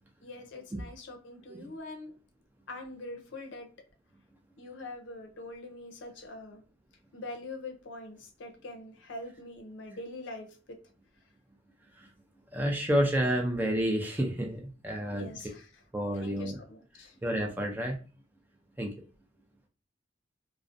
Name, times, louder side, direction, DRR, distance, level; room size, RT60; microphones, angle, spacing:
voice 1, 0.2-2.1 2.7-3.7 4.6-6.6 7.1-10.8 15.1-15.7 16.1-17.1, left 2 dB, 70° left, 4 dB, 0.5 m, -43 dB
voice 2, 12.5-15.3 15.9-16.6 17.2-18.0 18.8-18.9, equal, 10° right, 1 dB, 0.3 m, -30 dB
2.4 x 2.0 x 2.5 m, 0.35 s
head